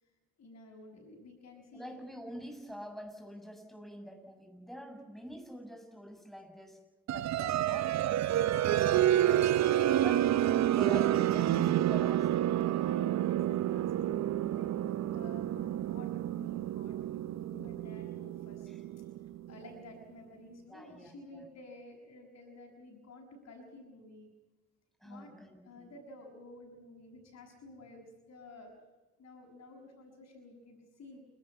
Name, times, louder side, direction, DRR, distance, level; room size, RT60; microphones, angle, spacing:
voice 1, 0.4-2.3 9.7-10.0 12.6-19.1 19.5-24.3 25.0-25.3 25.6-28.7 29.2-31.2, left 2 dB, 55° left, -2 dB, 6.7 m, -52 dB
voice 2, 1.7-6.8 7.1-9.5 10.0-10.2 10.8-13.3 18.7-18.8 20.7-21.5 25.0-25.9, equal, ahead, 3 dB, 7.4 m, -46 dB
sound 1, 7.1-19.6, right 12 dB, 65° right, 0.7 m, -29 dB
29.0 x 12.5 x 9.9 m, 1.2 s
cardioid pair, 90°, 30 cm